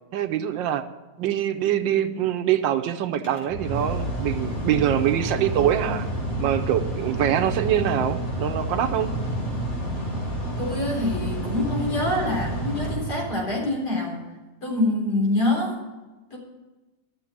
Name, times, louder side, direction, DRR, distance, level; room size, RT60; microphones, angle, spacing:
voice 1, 0.1-0.8 1.2-6.1 6.4-9.1, right 10 dB, 90° right, 7 dB, 1.5 m, -24 dB
Mechanical fan, 3.1-13.7, right 1 dB, 40° left, 2.8 m, -29 dB
voice 2, 10.6-14.2 14.6-15.8 16.3-16.4, left 2 dB, 60° left, -2 dB, 4.5 m, -25 dB
12.5 x 7.0 x 8.4 m, 1.2 s
omnidirectional pair, 2.0 m